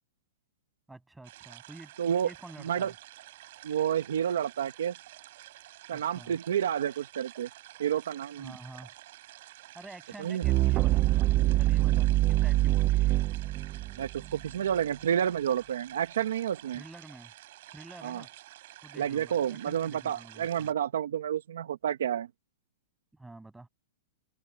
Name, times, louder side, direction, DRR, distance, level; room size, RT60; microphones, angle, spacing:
voice 1, 0.9-2.9 5.9-6.4 8.4-8.9 9.7-13.2 16.7-17.3 17.7-18.3 18.8-20.7 23.1-23.7, right 2 dB, 5° right, 7.5 m, -49 dB
sound 1, 1.2-20.7, right 16 dB, 40° right, 6.5 m, -50 dB
voice 2, 2.0-2.3 2.6-2.9 3.6-4.9 5.9-7.5 7.8-8.5 10.2-10.4 14.0-16.8 18.0-18.2 19.0-22.3, right 9 dB, 70° right, 1.3 m, -30 dB
sound 2, 10.4-14.5, right 16 dB, 20° right, 0.5 m, -25 dB
hypercardioid pair, 175°, 0 cm